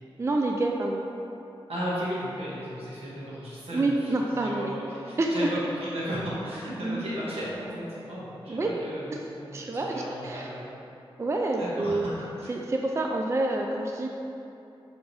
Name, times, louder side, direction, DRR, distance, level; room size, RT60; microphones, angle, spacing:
voice 1, 0.2-1.0 3.7-4.8 5.2-5.5 6.8-7.1 8.5-8.7 9.5-10.5 11.2-12.0 12.5-14.1, right 2 dB, 30° right, 1 dB, 0.3 m, -27 dB
voice 2, 1.7-10.7 11.6-12.1 12.4-12.5, equal, 80° right, -9 dB, 1.3 m, -35 dB
3.6 x 2.6 x 4.6 m, 2.8 s
cardioid pair, 45°, 10 cm